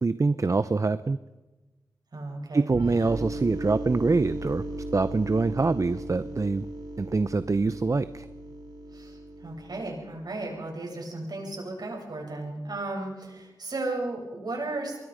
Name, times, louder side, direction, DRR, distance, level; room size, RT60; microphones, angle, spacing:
voice 1, 0.0-1.2 2.5-4.6 4.9-6.7 7.0-8.2, right 3 dB, 40° right, 14 dB, 0.7 m, -25 dB
voice 2, 2.1-2.7 8.9-15.0, right 2 dB, 55° right, 0 dB, 7.9 m, -35 dB
sound 1, 2.7-10.3, right 1 dB, 75° right, 6.5 m, -37 dB
24.0 x 22.0 x 5.2 m, 1.2 s
cardioid pair, 45°, 8 cm